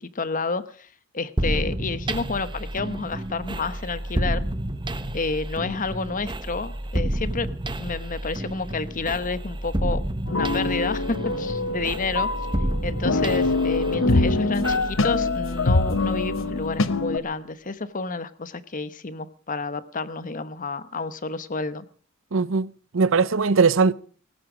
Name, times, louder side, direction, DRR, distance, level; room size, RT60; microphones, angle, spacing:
voice 1, 0.0-0.9 1.1-4.5 5.1-7.5 7.8-12.3 12.8-21.9, left 3 dB, 40° left, 1.0 m, -30 dB
sound 1, 1.4-17.0, right 1 dB, 20° right, 1.2 m, -30 dB
sound 2, 10.3-17.2, left 3 dB, 65° left, 1.0 m, -24 dB
voice 2, 22.3-23.9, right 4 dB, 65° right, 0.7 m, -20 dB
18.0 x 15.5 x 5.0 m
head